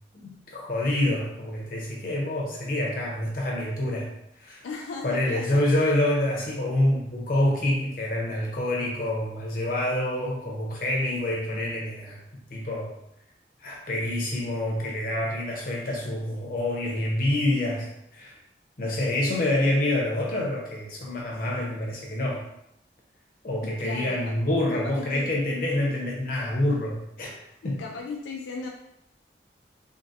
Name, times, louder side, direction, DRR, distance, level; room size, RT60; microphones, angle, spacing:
voice 1, 0.1-4.6 5.0-12.9 13.6-18.4 18.8-22.4 23.4-27.4 27.6-27.8, left 1 dB, 50° left, -2 dB, 0.8 m, -27 dB
voice 2, 4.6-5.7 23.8-24.2 24.7-25.3 27.6-28.7, left 4 dB, 85° left, 1 dB, 0.3 m, -36 dB
3.7 x 2.1 x 2.6 m, 0.77 s
head